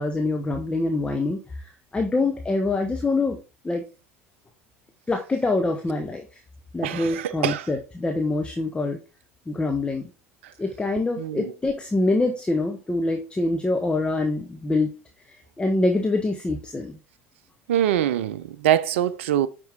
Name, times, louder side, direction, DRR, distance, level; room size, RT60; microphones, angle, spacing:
voice 1, 0.0-1.6 1.9-3.4 3.6-3.8 5.1-6.2 6.7-9.0 9.5-10.1 10.6-14.9 15.3-17.0, left 2 dB, 15° left, 1.2 m, -25 dB
voice 2, 6.8-7.7 11.2-11.5 17.7-19.5, right 11 dB, 70° right, 0.5 m, -24 dB
9.3 x 5.3 x 3.5 m
figure-of-eight pair, 70°, 7 cm